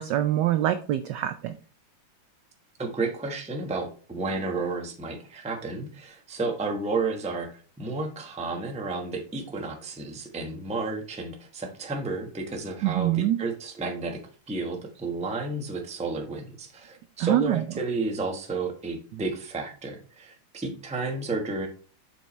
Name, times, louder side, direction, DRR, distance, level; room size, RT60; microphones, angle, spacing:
voice 1, 0.0-1.5 12.8-13.4 17.2-17.6 19.1-19.2, right 13 dB, 80° right, 10 dB, 0.9 m, -24 dB
voice 2, 2.8-14.2 14.5-21.7, right 3 dB, 5° right, 2 dB, 0.6 m, -32 dB
7.2 x 5.7 x 3.2 m, 0.40 s
omnidirectional pair, 2.4 m